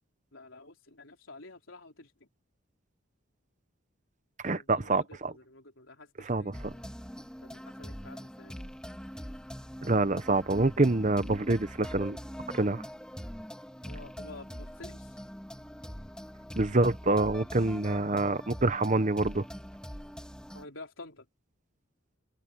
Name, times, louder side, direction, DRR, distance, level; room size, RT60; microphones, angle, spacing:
voice 1, 0.3-2.3 4.5-6.9 7.4-8.7 13.8-15.2 20.5-21.3, left 2 dB, 70° left, 3.7 m, -50 dB
voice 2, 4.4-5.3 6.2-6.5 9.8-12.2 12.5-12.8 16.6-19.4, right 2 dB, 35° right, 0.8 m, -26 dB
sound 1, 6.5-20.6, equal, 5° left, 2.1 m, -43 dB
head